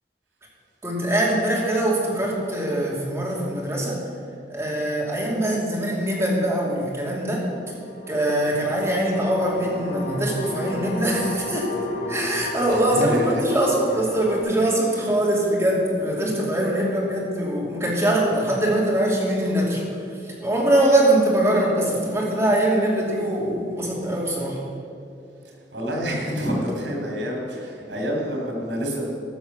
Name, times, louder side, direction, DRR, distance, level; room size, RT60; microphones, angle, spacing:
voice 1, 0.8-4.0 4.5-7.4 8.1-11.7 12.1-19.8 20.4-24.6, right 1 dB, 15° right, -4 dB, 2.6 m, -22 dB
sound 1, 7.5-14.4, equal, 90° left, 2.4 m, -33 dB
voice 2, 12.7-13.4 14.9-15.1 25.4-29.1, equal, 85° right, 0 dB, 3.3 m, -28 dB
14.0 x 6.1 x 6.8 m, 2.5 s
head